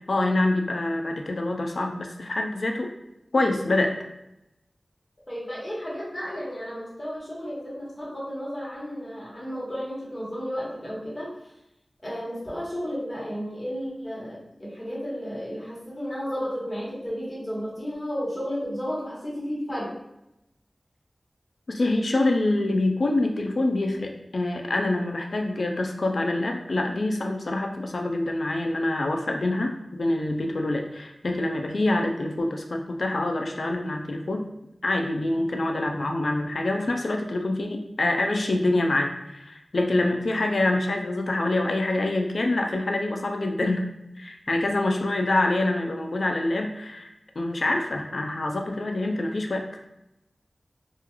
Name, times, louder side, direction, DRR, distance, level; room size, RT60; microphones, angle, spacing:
voice 1, 0.1-2.9 3.3-3.9 21.7-34.5 34.8-43.9 44.2-49.6, left 2 dB, 75° left, 3 dB, 0.4 m, -26 dB
voice 2, 5.3-11.5 12.0-19.9, equal, 30° left, -7 dB, 1.2 m, -33 dB
2.4 x 2.3 x 2.9 m, 0.87 s
wide cardioid pair, 70°, 0 cm